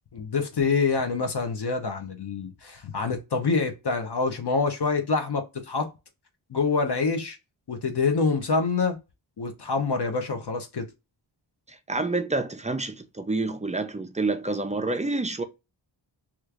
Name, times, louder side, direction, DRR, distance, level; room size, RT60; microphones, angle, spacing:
voice 1, 0.1-5.9 6.5-7.4 7.7-9.0 9.4-10.9, left 4 dB, 55° left, 0.8 m, -26 dB
voice 2, 11.7-15.4, right 3 dB, 15° right, 0.3 m, -28 dB
3.0 x 2.4 x 3.3 m
wide cardioid pair, 90°, 49 cm